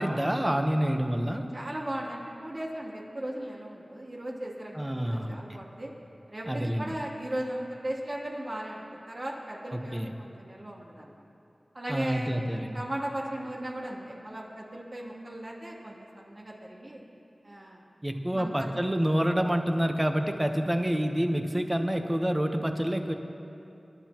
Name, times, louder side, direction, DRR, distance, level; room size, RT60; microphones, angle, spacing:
voice 1, 0.0-1.4 4.7-5.4 6.5-6.9 9.7-10.1 11.9-12.8 18.0-23.1, equal, 15° right, 5 dB, 1.0 m, -28 dB
voice 2, 1.5-5.9 6.3-11.2 11.7-17.0 17.4-17.8 18.3-18.7, right 1 dB, 50° right, -5 dB, 2.8 m, -37 dB
25.5 x 11.5 x 3.0 m, 2.8 s
wide cardioid pair, 60°, 0 cm